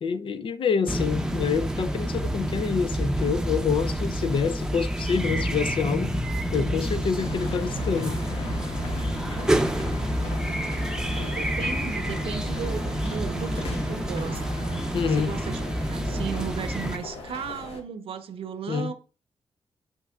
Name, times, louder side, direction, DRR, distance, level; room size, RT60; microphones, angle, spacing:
voice 1, 0.0-6.1 6.5-8.2 14.9-15.4 18.7-18.9, left 6 dB, 65° left, 0.6 m, -27 dB
sound 1, 0.9-17.0, right 1 dB, 5° right, 0.7 m, -28 dB
sound 2, 7.2-17.8, left 3 dB, 90° left, 1.2 m, -38 dB
voice 2, 10.6-14.6 15.0-18.9, right 7 dB, 80° right, 0.7 m, -36 dB
8.2 x 5.6 x 2.4 m
cardioid pair, 90°, 9 cm